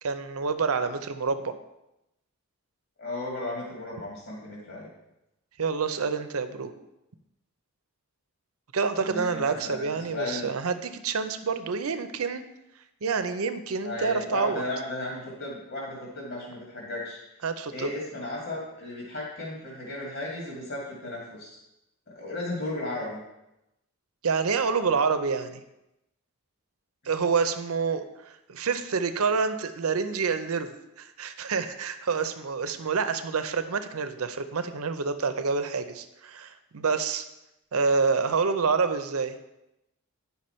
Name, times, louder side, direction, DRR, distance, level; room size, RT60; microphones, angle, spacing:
voice 1, 0.0-1.6 5.6-6.7 8.7-12.4 13.0-14.6 17.4-17.9 24.2-25.6 27.1-30.7 31.0-37.2 37.7-39.4, right 5 dB, 80° right, 10 dB, 0.6 m, -27 dB
voice 2, 3.0-4.9 8.9-10.5 13.8-17.2 17.7-21.6 22.1-23.2, left 2 dB, 55° left, -4 dB, 2.1 m, -35 dB
9.4 x 5.8 x 4.3 m, 0.90 s
head